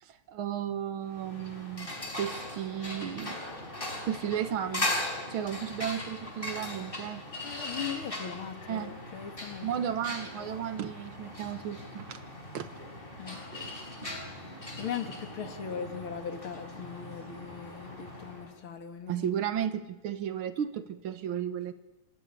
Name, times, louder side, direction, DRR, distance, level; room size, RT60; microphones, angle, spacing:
voice 1, 0.0-3.4 4.0-4.9 5.3-7.2 8.7-8.9 9.6-12.2 12.5-12.7 19.1-21.7, right 9 dB, 85° right, 11 dB, 2.1 m, -34 dB
sound 1, 1.1-18.5, left 1 dB, 25° left, 5.0 m, -39 dB
voice 2, 7.4-10.0 13.2-13.4 14.7-19.3, left 7 dB, 85° left, 6 dB, 2.9 m, -39 dB
26.5 x 16.5 x 10.0 m, 1.1 s
omnidirectional pair, 2.2 m